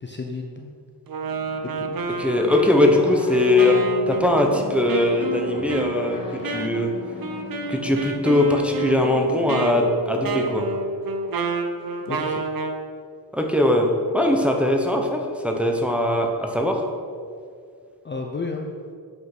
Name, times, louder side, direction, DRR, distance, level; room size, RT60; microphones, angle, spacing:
voice 1, 0.0-0.7 1.8-2.0 6.5-6.7 12.0-12.5 18.0-18.7, left 3 dB, 25° left, 1 dB, 0.6 m, -32 dB
Wind instrument woodwind instrument, 1.1-12.8, right 3 dB, 55° right, 0.8 m, -29 dB
sound 1, 1.2-11.9, left 1 dB, 55° left, 1.7 m, -39 dB
voice 2, 2.2-3.8 4.1-6.9 7.7-10.7 13.3-13.9 14.1-16.8, left 1 dB, 5° right, 1 dB, 0.9 m, -21 dB
8.2 x 5.6 x 6.0 m, 2.2 s
wide cardioid pair, 135°, 41 cm